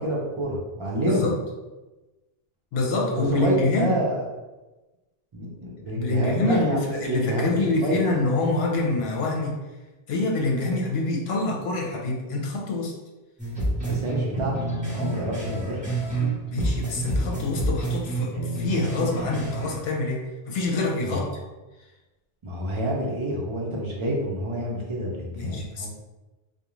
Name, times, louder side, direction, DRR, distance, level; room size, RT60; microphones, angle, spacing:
voice 1, 0.0-1.3 3.1-4.2 5.3-8.0 13.8-14.6 14.9-15.8 21.1-21.2 22.4-25.9, equal, 45° right, -3 dB, 0.4 m, -28 dB
voice 2, 1.0-1.4 2.7-3.9 5.9-9.6 10.1-12.9 16.5-21.3 25.3-25.9, left 2 dB, 75° left, -1 dB, 0.8 m, -26 dB
sound 1, 13.4-16.3 16.6-19.8, right 2 dB, 10° right, 0.8 m, -28 dB
2.4 x 2.1 x 3.0 m, 1.1 s
omnidirectional pair, 1.1 m